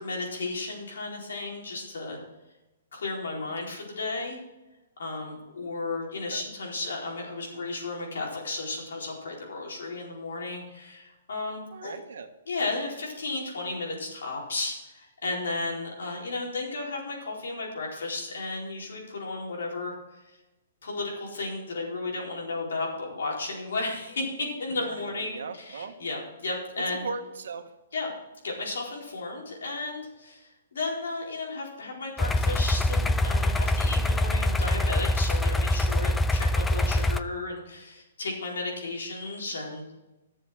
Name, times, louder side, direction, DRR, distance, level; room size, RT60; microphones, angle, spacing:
voice 1, 0.0-2.2 2.9-4.4 5.0-12.0 12.5-19.9 20.8-27.1 27.9-28.1 28.4-39.9, left 3 dB, 90° left, -2 dB, 4.4 m, -34 dB
voice 2, 11.7-12.3 24.7-25.9 26.9-27.6, right 4 dB, 75° right, 6 dB, 1.5 m, -38 dB
sound 1, 32.2-37.2, left 1 dB, 5° left, 0.3 m, -24 dB
12.5 x 7.2 x 6.2 m, 1.0 s
hypercardioid pair, 165°, 0 cm